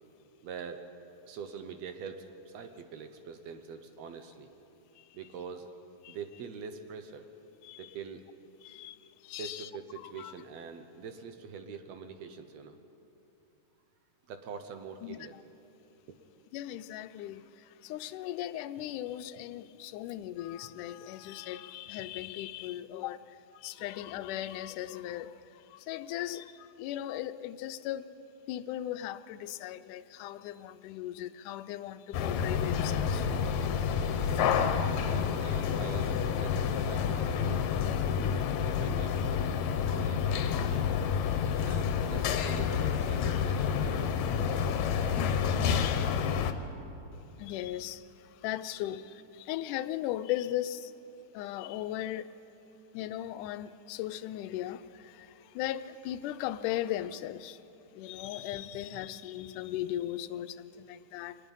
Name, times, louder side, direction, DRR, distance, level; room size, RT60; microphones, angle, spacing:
voice 1, 0.4-0.9 1.3-4.5 5.1-5.7 6.1-7.3 7.8-8.3 9.4-12.8 14.3-15.4 16.1-16.2 23.8-23.9 35.0-37.7 38.2-39.2 39.7-40.9 41.6-44.2 44.5-45.2 60.7-60.9, right 6 dB, 70° right, 7 dB, 2.0 m, -44 dB
voice 2, 8.6-9.7 10.0-10.3 15.0-15.2 16.5-28.1 28.5-33.3 47.4-49.0 49.4-50.9 51.3-52.3 52.9-57.6 57.9-61.4, left 13 dB, 90° left, 13 dB, 2.2 m, -38 dB
sound 1, 32.1-46.5, left 7 dB, 70° left, 2.1 m, -29 dB
23.5 x 20.0 x 5.5 m, 2.9 s
omnidirectional pair, 3.5 m